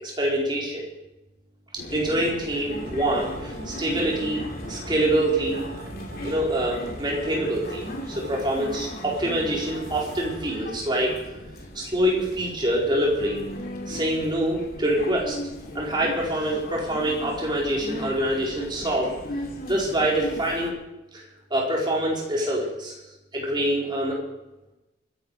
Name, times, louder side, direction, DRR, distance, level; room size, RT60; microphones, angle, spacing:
voice 1, 0.0-0.8 1.9-4.4 4.7-5.6 6.2-7.8 8.1-11.2 11.7-13.4 13.9-15.4 15.7-19.1 19.7-20.7 21.1-21.2 21.5-22.9 23.3-24.2, right 1 dB, 25° right, -3 dB, 4.4 m, -25 dB
sound 1, 1.8-20.7, left 1 dB, 50° left, 2.9 m, -37 dB
sound 2, 2.8-10.7, right 1 dB, 90° right, 5.7 m, -42 dB
24.5 x 11.0 x 4.9 m, 0.99 s
head